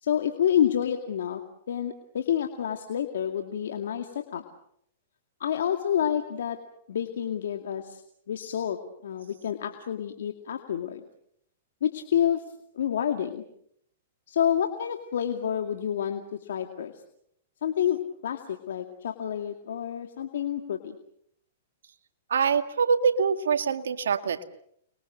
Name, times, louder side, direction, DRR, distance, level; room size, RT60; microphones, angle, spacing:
voice 1, 0.0-1.4 1.7-4.4 5.4-6.6 6.9-8.0 8.3-11.0 11.8-12.4 12.7-13.4 14.3-16.9 17.6-21.0, left 9 dB, 75° left, 5 dB, 2.3 m, -28 dB
voice 2, 22.3-24.4, right 6 dB, 80° right, 9 dB, 1.9 m, -24 dB
29.5 x 22.5 x 6.5 m, 0.70 s
hypercardioid pair, 130°, 0 cm